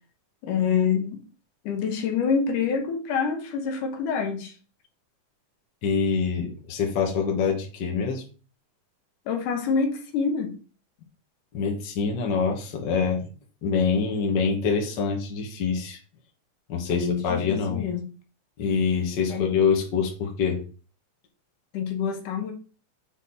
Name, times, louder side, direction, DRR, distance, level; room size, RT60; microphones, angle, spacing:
voice 1, 0.4-1.2 1.7-4.5 9.3-10.6 16.9-18.1 19.3-19.5 21.7-22.5, left 6 dB, 70° left, 2.4 m, -26 dB
voice 2, 5.8-8.2 11.5-13.3 13.6-16.0 16.7-17.9 18.6-20.6, left 5 dB, 50° left, 1.4 m, -25 dB
8.4 x 4.0 x 4.2 m
omnidirectional pair, 3.9 m